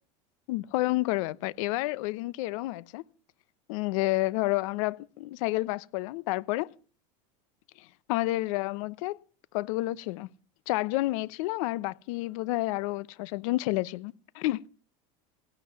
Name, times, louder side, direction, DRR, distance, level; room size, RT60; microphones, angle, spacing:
voice 1, 0.5-3.0 3.7-6.7 7.8-9.2 9.5-10.3 10.7-14.6, left 19 dB, 75° left, 0.9 m, -30 dB
17.0 x 12.0 x 7.1 m
supercardioid pair, 115°, 17 cm